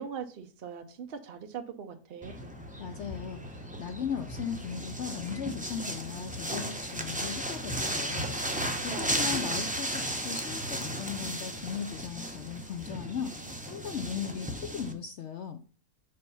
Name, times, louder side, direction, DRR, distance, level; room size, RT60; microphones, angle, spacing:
voice 1, 0.0-2.5 8.6-9.3, right 7 dB, 60° right, 5 dB, 0.6 m, -41 dB
sound 1, 2.2-14.9, right 1 dB, 10° right, 0.5 m, -35 dB
voice 2, 2.8-8.3 8.8-15.6, left 7 dB, 65° left, 8 dB, 0.7 m, -37 dB
5.2 x 4.4 x 5.4 m, 0.41 s
omnidirectional pair, 1.7 m